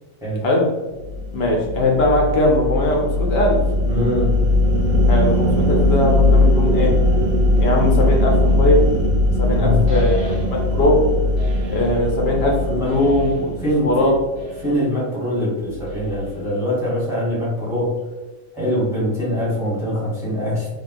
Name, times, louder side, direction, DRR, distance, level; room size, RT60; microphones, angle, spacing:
sound 1, 1.0-14.6, left 1 dB, 70° right, 0.9 m, -19 dB
voice 1, 1.3-3.6 5.1-6.9 7.6-8.9 9.4-11.0 11.6-13.5 13.8-14.1, left 1 dB, 65° left, 0 dB, 0.7 m, -19 dB
voice 2, 3.9-4.4 9.5-9.8 12.8-12.9 13.6-14.1 14.6-17.9 18.5-20.7, equal, 5° right, -8 dB, 0.9 m, -23 dB
sound 2, 9.9-10.8 11.4-12.0 12.8-13.6 14.3-15.0 15.9-16.6, left 2 dB, 50° right, 0.5 m, -38 dB
2.8 x 2.3 x 2.6 m, 1.1 s
omnidirectional pair, 1.4 m